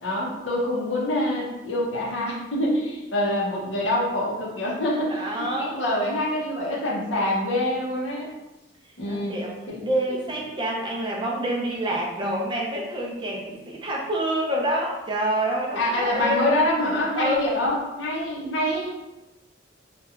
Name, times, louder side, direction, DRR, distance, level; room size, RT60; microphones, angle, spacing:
voice 1, 0.0-8.3 9.0-9.3 9.7-9.8 15.7-18.9, left 1 dB, 75° left, -3 dB, 0.6 m, -25 dB
voice 2, 5.1-5.8 9.1-9.5 9.8-16.6 17.2-17.5, right 1 dB, 25° right, -2 dB, 0.4 m, -27 dB
2.8 x 2.2 x 2.3 m, 0.99 s
head